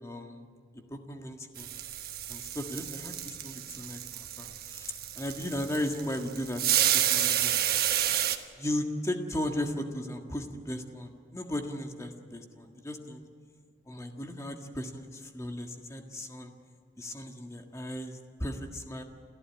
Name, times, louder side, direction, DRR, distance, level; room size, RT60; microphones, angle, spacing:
voice 1, 0.0-0.5 0.7-1.7 2.3-7.6 8.6-13.2 13.9-16.5 17.0-19.0, left 1 dB, 15° left, 4 dB, 1.7 m, -36 dB
sound 1, 1.6-8.4, right 11 dB, 55° right, 1.3 m, -30 dB
28.5 x 14.0 x 8.8 m, 2.3 s
head